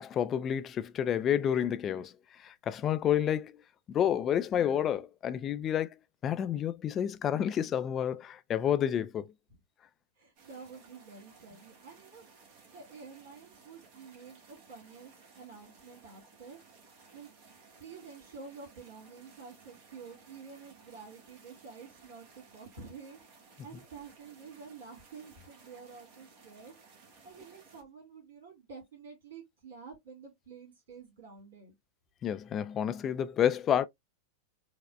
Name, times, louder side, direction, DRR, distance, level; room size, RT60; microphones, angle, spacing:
voice 1, 0.0-3.5 3.9-6.0 6.2-9.3 32.2-33.9, left 9 dB, 30° left, 0.3 m, -29 dB
voice 2, 10.2-12.3 12.7-16.6 17.1-17.3 17.8-26.8 27.2-31.7, right 5 dB, 65° right, 2.0 m, -49 dB
sound 1, 10.4-27.8, right 4 dB, 50° right, 1.1 m, -58 dB
4.6 x 2.1 x 2.3 m
figure-of-eight pair, 95°, 0 cm